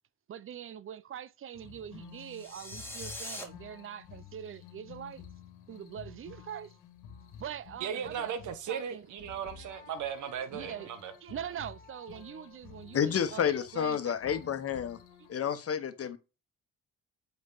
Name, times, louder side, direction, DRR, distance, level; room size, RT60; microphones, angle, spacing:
voice 1, 0.3-5.3 5.7-6.7 7.4-9.1 10.5-10.9 11.2-14.4 15.3-15.5 16.0-16.1, right 9 dB, 45° right, 0.6 m, -43 dB
sound 1, 1.5-15.4, left 8 dB, 85° left, 1.6 m, -52 dB
sound 2, 2.3-3.4, left 1 dB, 10° left, 2.2 m, -42 dB
voice 2, 7.8-11.1, right 8 dB, 75° right, 1.3 m, -37 dB
voice 3, 12.9-15.0 15.3-16.2, left 8 dB, 50° left, 1.2 m, -30 dB
8.2 x 4.7 x 4.0 m
cardioid pair, 90°, 30 cm